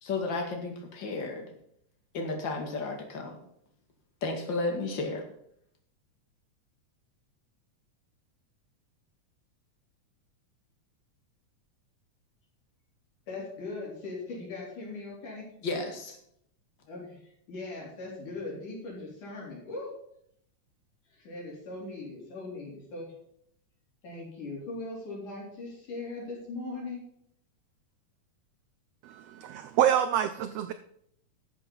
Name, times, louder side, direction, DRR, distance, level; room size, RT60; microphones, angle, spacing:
voice 1, 0.0-1.5 2.1-3.4 4.2-5.2 15.6-16.2, left 3 dB, 40° left, 2 dB, 2.5 m, -33 dB
voice 2, 13.3-15.5 16.8-19.9 21.1-23.1 24.0-27.0, left 3 dB, 85° left, -3 dB, 5.2 m, -39 dB
voice 3, 29.0-30.7, right 10 dB, 85° right, 11 dB, 1.4 m, -27 dB
12.5 x 7.6 x 5.5 m, 0.71 s
omnidirectional pair, 3.5 m